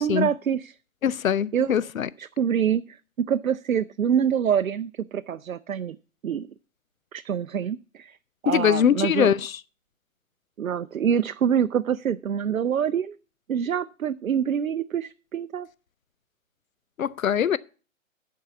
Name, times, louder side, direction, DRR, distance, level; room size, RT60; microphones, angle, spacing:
voice 1, 0.0-0.7 1.5-1.7 2.2-6.0 6.2-6.5 7.1-8.2 8.4-9.3 10.6-13.2 13.5-15.7, right 8 dB, 85° right, 0.5 m, -26 dB
voice 2, 1.0-2.1 8.5-9.5 17.0-17.6, left 9 dB, 85° left, 0.5 m, -22 dB
11.0 x 4.7 x 6.8 m
figure-of-eight pair, 125°, 40 cm